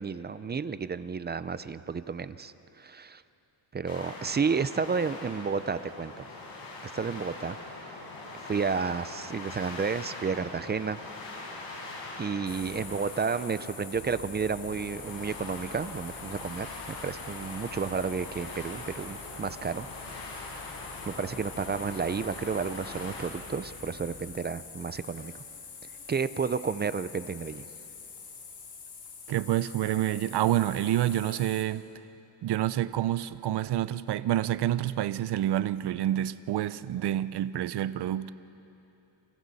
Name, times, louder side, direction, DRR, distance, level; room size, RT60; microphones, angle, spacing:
voice 1, 0.0-3.2 3.7-6.3 6.8-8.0 8.4-11.0 12.2-19.9 20.2-20.6 21.1-25.4 26.1-27.7, right 5 dB, 25° right, 14 dB, 0.5 m, -32 dB
sound 1, 3.9-23.3, left 2 dB, 80° left, 5.3 m, -43 dB
sound 2, 12.5-31.6, left 5 dB, 60° left, 3.2 m, -45 dB
voice 2, 29.3-31.8 32.4-38.3, right 12 dB, 65° right, 15 dB, 0.7 m, -28 dB
29.0 x 27.0 x 4.1 m, 2.9 s
cardioid pair, 130°, 44 cm